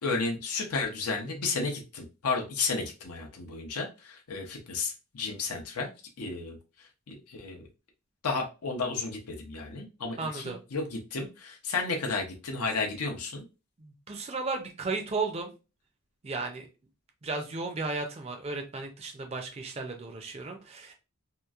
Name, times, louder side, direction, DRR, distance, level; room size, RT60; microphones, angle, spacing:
voice 1, 0.0-5.9 6.2-7.7 8.2-13.4, left 4 dB, 85° left, 1 dB, 0.6 m, -33 dB
voice 2, 10.2-10.6 13.8-15.5 16.2-16.7 17.2-20.9, right 3 dB, 30° right, 3 dB, 0.4 m, -34 dB
2.9 x 2.4 x 2.3 m, 0.30 s
head